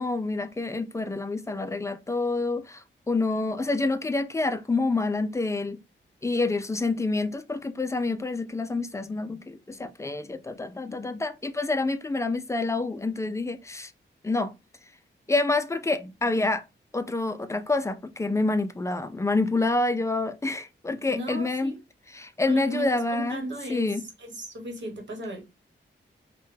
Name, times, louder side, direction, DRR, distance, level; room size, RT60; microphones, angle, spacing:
voice 1, 0.0-5.8 6.2-13.9 14.2-14.5 15.3-16.6 16.9-21.7 22.1-23.4 23.7-24.0, left 3 dB, 15° left, 0.3 m, -27 dB
voice 2, 21.1-21.8 22.4-23.9 24.2-25.4, right 1 dB, 70° right, 1.1 m, -36 dB
3.1 x 2.2 x 3.1 m
wide cardioid pair, 130°, 20 cm